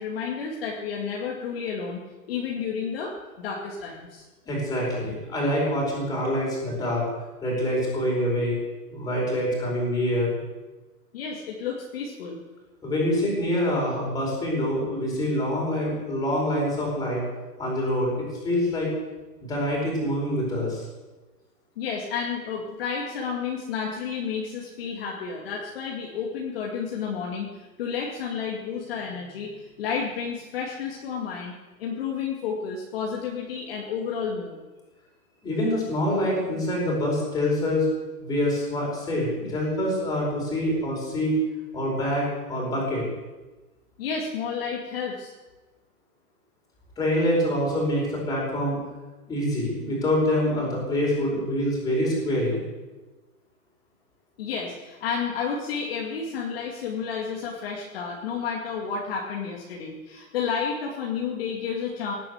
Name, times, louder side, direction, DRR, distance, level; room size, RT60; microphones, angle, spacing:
voice 1, 0.0-2.0 2.3-4.2 11.1-12.4 21.8-34.6 44.0-45.3 54.4-62.1, left 6 dB, 40° left, -2 dB, 2.4 m, -31 dB
voice 2, 4.4-7.1 7.4-8.6 8.9-10.4 12.8-17.2 17.6-18.9 19.4-20.8 35.4-37.9 38.2-41.4 41.7-43.0 47.0-48.8 49.3-52.6, left 1 dB, 10° left, -3 dB, 4.8 m, -25 dB
18.5 x 9.5 x 8.0 m, 1.2 s
hypercardioid pair, 170°, 47 cm